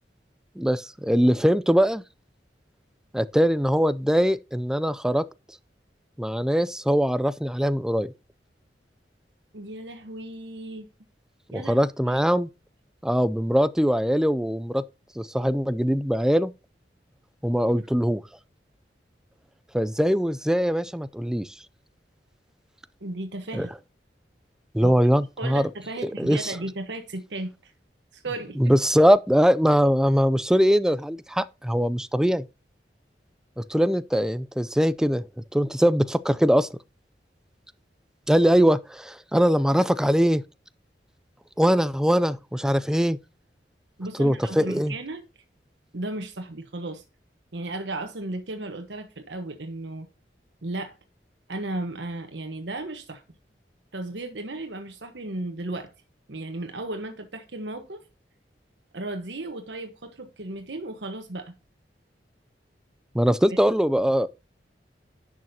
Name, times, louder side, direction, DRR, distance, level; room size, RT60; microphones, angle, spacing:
voice 1, 0.6-2.0 3.1-5.2 6.2-8.1 11.5-12.5 13.0-14.8 15.2-16.5 17.4-18.2 19.7-21.5 23.5-23.7 24.7-25.7 26.0-26.5 28.6-32.5 33.6-35.2 35.5-36.7 38.3-40.4 41.6-43.2 44.2-44.9 63.1-64.3, equal, 5° right, 0.4 m, -22 dB
voice 2, 9.5-10.9 11.5-11.8 12.0-12.2 17.8-17.9 23.0-23.7 24.8-25.0 25.4-27.7 28.1-28.6 44.0-45.2 45.9-47.0 47.5-50.1 50.6-50.9 51.5-53.2 53.9-55.9 56.3-58.0 58.9-61.5, right 2 dB, 85° right, 1.2 m, -35 dB
10.5 x 6.3 x 2.8 m
head